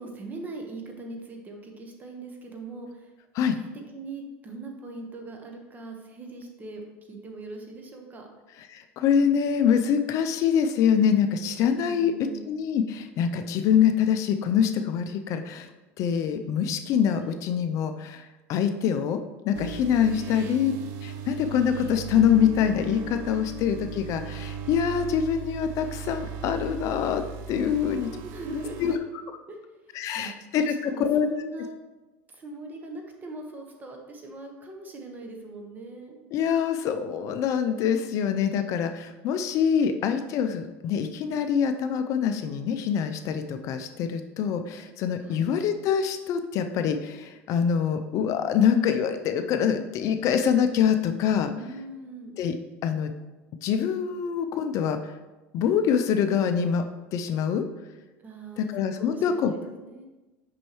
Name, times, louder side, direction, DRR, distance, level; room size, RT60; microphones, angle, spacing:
voice 1, 0.0-3.1 3.5-3.7 3.9-8.3 11.8-12.4 17.2-17.3 20.2-20.4 27.9-28.9 29.5-29.6 29.9-30.3 30.6-31.7 32.3-36.2 45.2-45.4 51.5-52.4 58.2-60.1, right 2 dB, 25° right, 2 dB, 1.1 m, -41 dB
voice 2, 8.7-15.7 16.0-20.7 21.0-27.2 27.5-28.1 28.5-29.0 29.9-31.3 36.3-51.5 52.4-52.6 52.8-53.1 53.6-55.1 55.5-56.8 57.1-57.7 58.6-59.5, left 8 dB, 50° left, 8 dB, 0.4 m, -25 dB
sound 1, 19.5-29.0, right 6 dB, 55° right, 0.6 m, -37 dB
6.1 x 5.5 x 3.0 m, 1.1 s
supercardioid pair, 115°, 7 cm